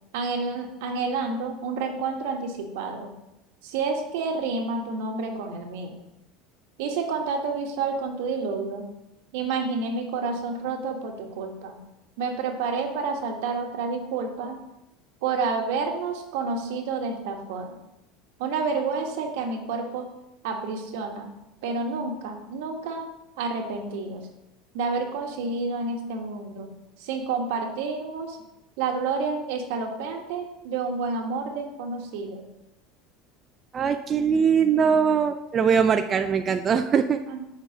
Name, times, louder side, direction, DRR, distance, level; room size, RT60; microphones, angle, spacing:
voice 1, 0.1-3.1 3.6-5.9 6.8-8.9 9.3-11.7 12.2-14.6 15.2-17.7 18.4-20.0 20.4-21.3 21.6-23.0 23.4-24.2 24.7-26.7 27.0-28.4 28.8-32.4 37.3-37.4, right 4 dB, 75° right, 2 dB, 1.3 m, -29 dB
voice 2, 33.7-37.2, right 6 dB, 30° right, 7 dB, 0.3 m, -21 dB
6.0 x 4.0 x 6.0 m, 0.90 s
supercardioid pair, 135°, 0 cm